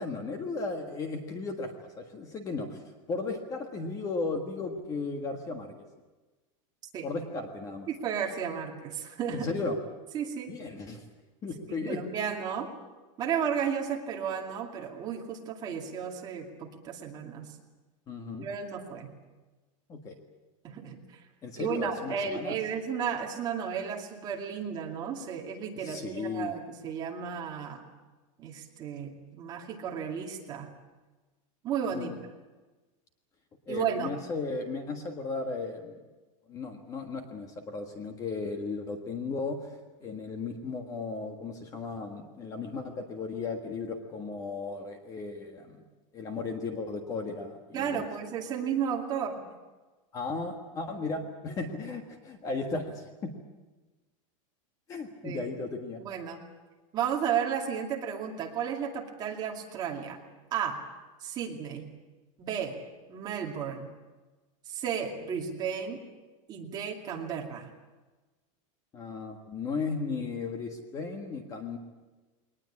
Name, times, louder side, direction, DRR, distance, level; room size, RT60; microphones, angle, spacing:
voice 1, 0.0-2.8 3.1-5.7 7.0-7.9 9.3-9.8 10.5-11.0 11.4-12.0 18.1-18.5 19.9-20.1 21.4-22.6 25.7-26.5 31.9-32.2 33.7-36.0 36.5-39.8 40.0-45.8 46.1-48.0 50.1-53.3 54.9-56.0 68.9-71.8, left 3 dB, 20° left, 5 dB, 1.5 m, -35 dB
voice 2, 7.9-9.5 10.1-10.5 11.7-12.7 13.2-17.5 18.4-19.1 20.6-21.2 21.6-27.8 28.4-30.7 31.6-32.1 33.7-34.1 47.7-49.4 55.2-55.5 56.0-56.4 56.9-60.2 60.5-60.8 61.2-61.9 62.4-62.8 63.1-63.9 64.7-66.0 66.5-67.7, right 7 dB, 25° right, 1 dB, 2.4 m, -33 dB
22.0 x 19.5 x 8.5 m, 1.2 s
supercardioid pair, 175°, 17 cm